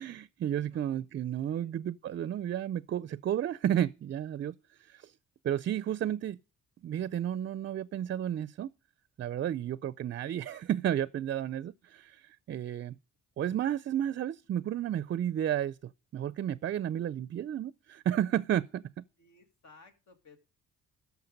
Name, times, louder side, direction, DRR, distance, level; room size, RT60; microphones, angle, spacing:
voice 1, 0.0-5.1 5.4-6.4 6.8-8.7 9.2-13.0 13.4-19.0, right 10 dB, 40° right, 0.4 m, -32 dB
voice 2, 19.2-20.4, left 4 dB, 70° left, 2.1 m, -58 dB
13.5 x 5.8 x 5.2 m
cardioid pair, 90°, 30 cm